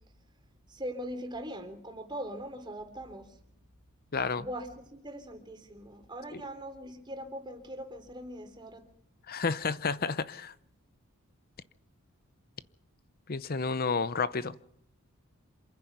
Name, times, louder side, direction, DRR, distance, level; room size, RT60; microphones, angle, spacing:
voice 1, 0.7-3.3 4.3-8.8, equal, 20° right, 3.3 m, -41 dB
voice 2, 4.1-4.5 6.3-6.4 9.3-10.5 13.3-14.6, left 4 dB, 40° left, 0.7 m, -31 dB
27.5 x 10.5 x 9.3 m
head